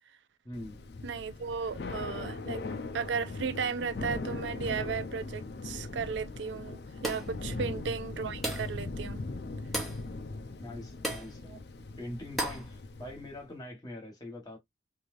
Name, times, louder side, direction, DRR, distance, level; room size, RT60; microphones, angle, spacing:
voice 1, 0.4-0.8 7.4-7.6 10.6-11.6 12.0-14.6, left 1 dB, 20° left, 1.3 m, -43 dB
Thunder / Rain, 0.5-13.4, left 3 dB, 60° left, 0.5 m, -40 dB
voice 2, 1.0-2.6 2.9-9.2, right 6 dB, 80° right, 0.4 m, -35 dB
sound 1, 7.0-7.4 8.4-8.8 9.7-10.0 11.0-11.3 12.4-12.7, right 1 dB, ahead, 0.9 m, -34 dB
3.2 x 2.8 x 2.5 m
head